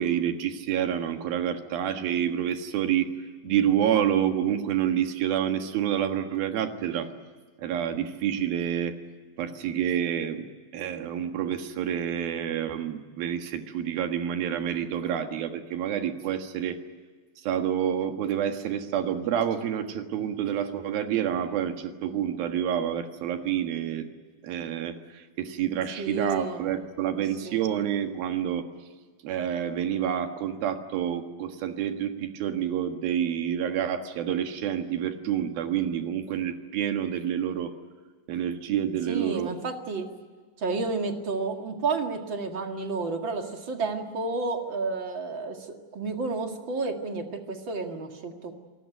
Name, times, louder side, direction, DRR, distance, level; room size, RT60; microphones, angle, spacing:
voice 1, 0.0-3.1 3.4-7.1 7.6-9.0 9.4-10.5 10.7-16.8 17.4-24.1 24.4-28.7 29.2-37.7 38.3-39.5, right 9 dB, 90° right, 6 dB, 3.5 m, -28 dB
voice 2, 26.0-26.7 27.2-27.7 39.1-40.1 40.6-48.5, right 3 dB, 40° right, 4 dB, 2.3 m, -31 dB
28.0 x 18.5 x 9.2 m, 1.5 s
omnidirectional pair, 4.1 m